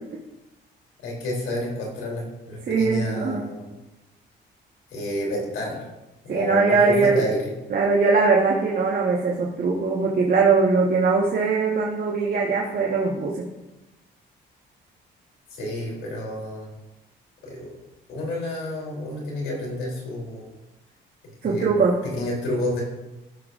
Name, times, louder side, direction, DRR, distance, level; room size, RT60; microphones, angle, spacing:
voice 1, 1.0-3.7 4.9-5.8 6.2-7.5 15.5-16.7 17.4-17.8 18.1-20.5 21.4-21.7 22.0-22.8, left 1 dB, 90° left, -3 dB, 3.1 m, -30 dB
voice 2, 2.7-3.5 6.3-7.3 7.7-13.5 21.4-22.0, right 4 dB, 50° right, -3 dB, 1.3 m, -21 dB
13.5 x 6.8 x 2.5 m, 1.0 s
cardioid pair, 90°, 20 cm